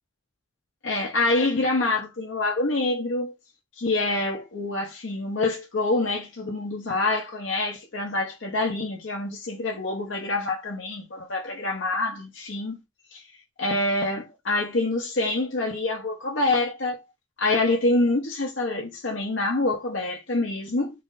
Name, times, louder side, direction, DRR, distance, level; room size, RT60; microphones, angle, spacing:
voice 1, 0.8-3.3 3.8-12.8 13.1-13.2 13.6-17.0 17.4-20.9, left 2 dB, 70° left, 0.9 m, -26 dB
3.2 x 2.5 x 3.9 m
head